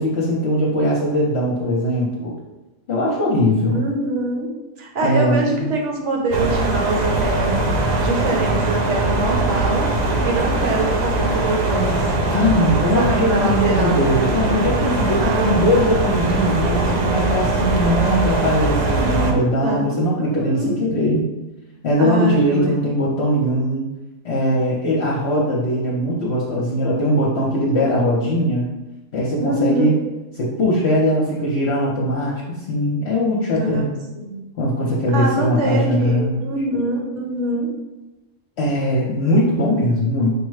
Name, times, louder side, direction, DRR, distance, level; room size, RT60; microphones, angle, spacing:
voice 1, 0.0-2.3 2.9-3.8 5.0-5.7 12.3-21.3 21.8-23.8 24.2-28.7 29.1-29.9 30.4-33.9 34.6-36.5 38.6-40.3, equal, 55° left, -4 dB, 0.9 m, -20 dB
voice 2, 3.7-4.5 4.8-7.6 8.0-9.9 10.2-12.4 12.9-14.0 15.2-15.9 19.0-19.9 20.2-20.7 22.0-22.8 27.8-28.6 29.4-30.0 33.5-33.8 34.1-34.4 35.1-37.7, right 2 dB, 60° right, 0 dB, 1.1 m, -24 dB
sound 1, 6.3-19.3, right 2 dB, 90° right, 0.3 m, -21 dB
Stream, 7.1-12.2, left 1 dB, 15° left, 0.7 m, -37 dB
5.0 x 2.1 x 4.7 m, 1.1 s
omnidirectional pair, 1.5 m